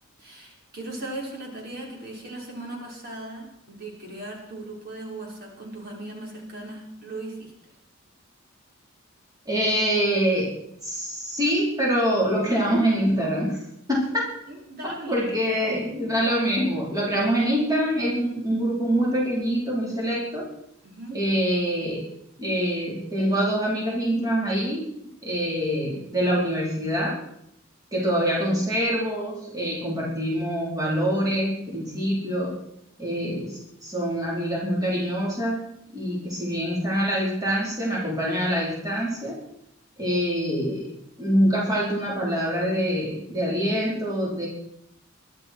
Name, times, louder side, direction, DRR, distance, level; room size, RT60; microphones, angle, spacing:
voice 1, 0.2-7.7 14.5-16.2 20.8-21.2, right 2 dB, 50° right, -2 dB, 4.7 m, -38 dB
voice 2, 9.5-10.5 10.8-13.6 13.9-14.3 15.1-20.5 21.1-22.1 22.4-24.9 25.2-27.2 27.9-32.6 33.0-39.4 40.0-40.9 41.2-44.5, equal, 20° right, -4 dB, 4.4 m, -25 dB
23.0 x 11.5 x 4.8 m, 0.77 s
head